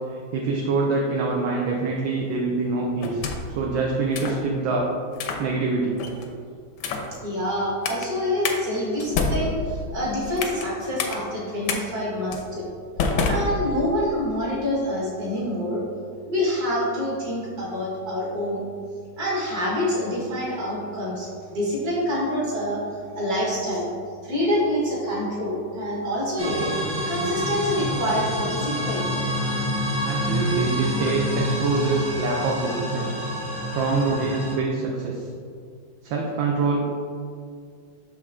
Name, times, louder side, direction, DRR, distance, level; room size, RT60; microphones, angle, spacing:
voice 1, 0.1-3.2 3.5-4.9 5.4-6.0 30.0-33.1 33.7-35.3 36.0-36.8, right 3 dB, 75° right, -1 dB, 1.4 m, -25 dB
sound 1, 3.0-3.6 4.1-4.4 5.1-5.5 6.0-6.3 6.8-7.1 7.8-8.1 8.4-8.6 9.0-10.7 11.0-11.2 11.7-11.8 12.3-12.5 13.0-14.1, left 4 dB, 80° left, 1.5 m, -27 dB
voice 2, 7.2-12.7 13.3-15.8 16.2-18.6 19.2-22.8 23.1-23.9 24.2-26.7 27.1-29.1, left 1 dB, 50° right, -5 dB, 2.2 m, -26 dB
sound 2, 26.4-34.6, equal, 25° right, 1.1 m, -27 dB
6.3 x 5.5 x 3.6 m, 2.3 s
omnidirectional pair, 2.2 m